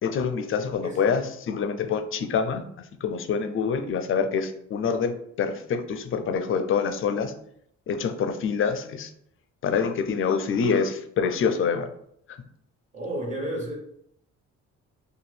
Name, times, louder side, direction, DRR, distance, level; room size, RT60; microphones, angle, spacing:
voice 1, 0.0-2.6 3.0-7.3 7.9-9.1 9.6-11.9, left 6 dB, 45° left, 9 dB, 0.4 m, -26 dB
voice 2, 12.9-13.7, right 1 dB, 25° right, -2 dB, 1.2 m, -31 dB
2.7 x 2.2 x 3.2 m, 0.69 s
cardioid pair, 90°, 30 cm